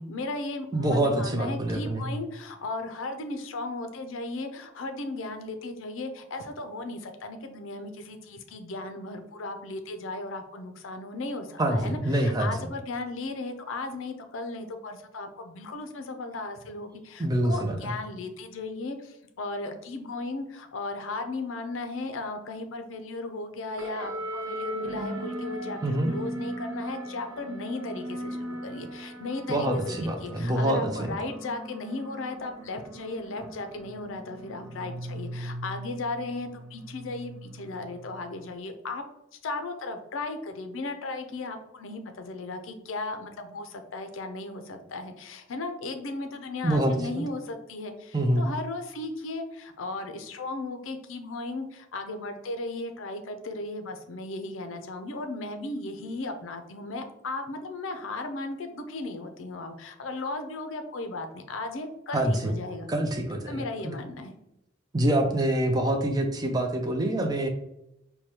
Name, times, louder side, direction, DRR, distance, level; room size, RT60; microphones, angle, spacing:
voice 1, 0.0-39.0 39.4-62.9 63.5-64.4, left 2 dB, 70° left, 7 dB, 0.5 m, -36 dB
voice 2, 0.7-2.1 11.6-12.5 17.2-17.9 25.8-26.1 29.5-31.1 46.6-47.2 48.1-48.4 62.1-62.6 62.9-63.9 64.9-67.5, right 1 dB, 20° right, 4 dB, 0.4 m, -26 dB
sound 1, 23.8-38.5, right 1 dB, 80° right, 0.6 m, -39 dB
4.7 x 2.2 x 2.9 m, 0.83 s
head